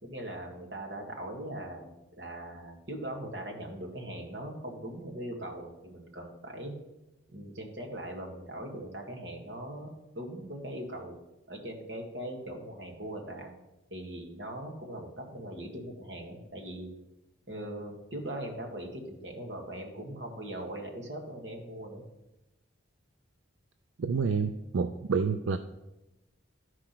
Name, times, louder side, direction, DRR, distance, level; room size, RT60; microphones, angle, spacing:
voice 1, 0.0-1.9 2.2-6.7 7.3-9.9 10.2-11.2 11.5-13.5 13.9-16.9 17.5-22.0, right 1 dB, 55° right, 1 dB, 1.8 m, -40 dB
voice 2, 24.0-25.6, right 5 dB, 80° right, 9 dB, 0.4 m, -28 dB
12.0 x 4.9 x 5.9 m, 0.95 s
head